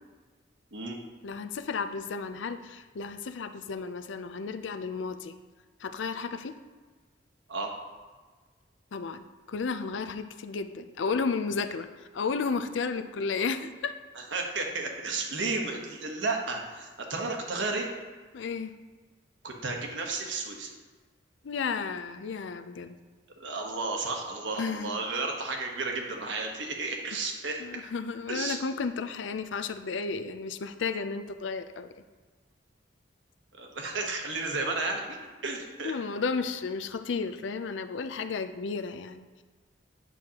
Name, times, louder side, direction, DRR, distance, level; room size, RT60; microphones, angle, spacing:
voice 1, 1.2-5.3 5.8-6.5 8.9-13.9 18.3-18.7 21.4-23.0 24.5-24.9 27.6-31.9 35.8-39.3, left 5 dB, 85° left, 10 dB, 0.5 m, -33 dB
voice 2, 14.1-17.9 19.4-20.7 23.4-27.8 28.3-28.6 33.5-35.9, right 3 dB, 85° right, 1 dB, 1.2 m, -33 dB
9.2 x 6.2 x 2.9 m, 1.4 s
head